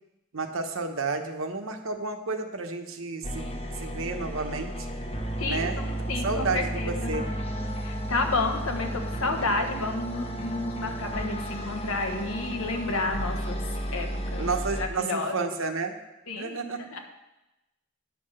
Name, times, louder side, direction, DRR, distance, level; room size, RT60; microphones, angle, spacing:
voice 1, 0.3-4.7 5.4-5.9 6.2-7.3 14.4-16.0 16.3-16.8, right 4 dB, 70° right, 5 dB, 1.1 m, -31 dB
sound 1, 3.2-14.9, equal, 30° left, 1.1 m, -33 dB
voice 2, 5.4-7.1 7.8-13.6 13.9-14.5 14.8-15.5 16.3-17.0, left 3 dB, 90° left, 4 dB, 1.4 m, -31 dB
10.5 x 5.9 x 6.5 m, 0.98 s
head